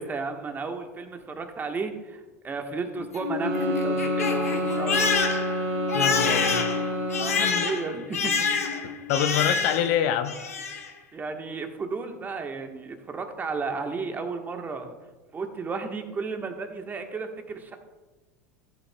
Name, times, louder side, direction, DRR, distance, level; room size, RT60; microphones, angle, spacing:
voice 1, 0.0-5.1 7.1-8.5 11.1-14.9 15.3-17.8, right 4 dB, 25° right, 5 dB, 1.2 m, -33 dB
Crying sobbing, 3.0-10.0 10.3-10.9, left 5 dB, 80° left, 1.1 m, -27 dB
sound 1, 3.3-7.6, right 1 dB, 45° right, 3.0 m, -29 dB
voice 2, 5.9-6.6 7.3-7.7 9.1-10.3, left 10 dB, 55° left, 9 dB, 0.7 m, -26 dB
15.0 x 8.2 x 2.2 m, 1.2 s
figure-of-eight pair, 80°, 8 cm